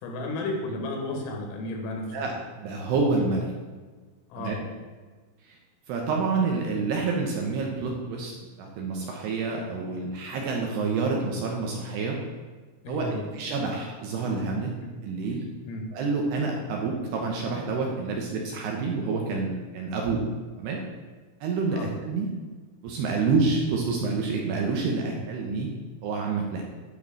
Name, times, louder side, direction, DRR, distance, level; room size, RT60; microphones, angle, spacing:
voice 1, 0.0-2.2 4.3-4.6 12.8-13.3 14.8-15.0 15.6-15.9 21.7-21.9 23.2-23.3, left 2 dB, 85° left, 2 dB, 4.4 m, -33 dB
voice 2, 2.1-3.5 4.4-4.6 5.5-5.6 5.9-8.3 8.6-12.2 12.9-14.7 15.0-15.4 15.9-20.2 20.6-20.8 21.4-22.3 22.8-25.7 26.0-26.6, right 4 dB, 75° right, 0 dB, 2.6 m, -28 dB
12.0 x 4.7 x 7.5 m, 1.4 s
omnidirectional pair, 5.8 m